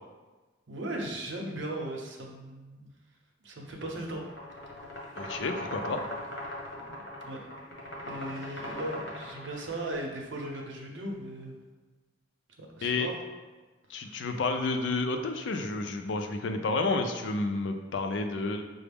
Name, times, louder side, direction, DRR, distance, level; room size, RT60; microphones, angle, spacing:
voice 1, 0.7-2.9 3.4-4.3 6.7-7.5 8.0-11.5 12.6-13.1 14.0-14.2, right 1 dB, 85° right, 0 dB, 0.7 m, -38 dB
sound 1, 4.2-9.9, left 1 dB, 70° left, 1.1 m, -39 dB
voice 2, 5.2-6.0 12.8-13.1 13.9-18.6, left 3 dB, 85° left, 6 dB, 0.4 m, -30 dB
5.8 x 2.0 x 3.4 m, 1.3 s
head